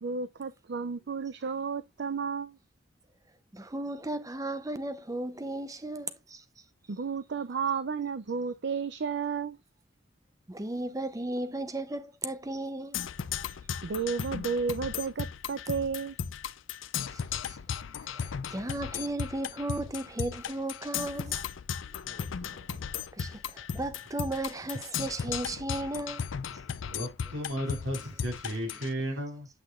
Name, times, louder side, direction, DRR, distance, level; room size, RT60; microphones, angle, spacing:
voice 1, 0.0-2.6 6.9-9.6 13.8-16.2, right 5 dB, 60° right, 0.5 m, -32 dB
voice 2, 3.5-6.4 10.5-13.0 17.1-17.6 18.2-21.4 23.2-26.2, right 2 dB, 20° right, 0.6 m, -35 dB
Percussion, 12.9-28.9, left 7 dB, 85° left, 0.5 m, -36 dB
voice 3, 21.9-22.8 26.4-26.5 26.9-29.5, equal, 90° right, 4.2 m, -35 dB
8.3 x 5.9 x 2.4 m
head